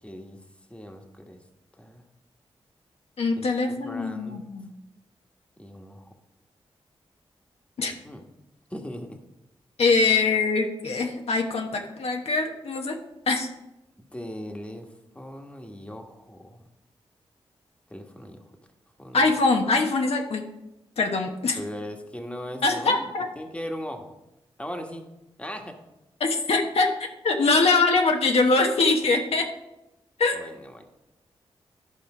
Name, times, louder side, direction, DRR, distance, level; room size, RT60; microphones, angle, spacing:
voice 1, 0.0-0.4 0.7-1.4 1.8-2.0 3.4-4.5 5.6-6.1 8.0-8.3 8.7-9.2 14.1-14.9 15.1-16.7 17.9-18.5 19.0-19.3 21.5-24.1 24.6-25.0 25.4-25.7 30.3-30.8, equal, 10° left, 3 dB, 1.4 m, -38 dB
voice 2, 3.2-4.7 7.8-7.9 9.8-13.0 13.3-13.5 19.1-20.5 21.0-21.6 22.6-23.3 26.2-29.5 30.2-30.4, left 3 dB, 75° left, 2 dB, 1.1 m, -23 dB
11.5 x 5.0 x 4.9 m, 0.94 s
cardioid pair, 55°, 10 cm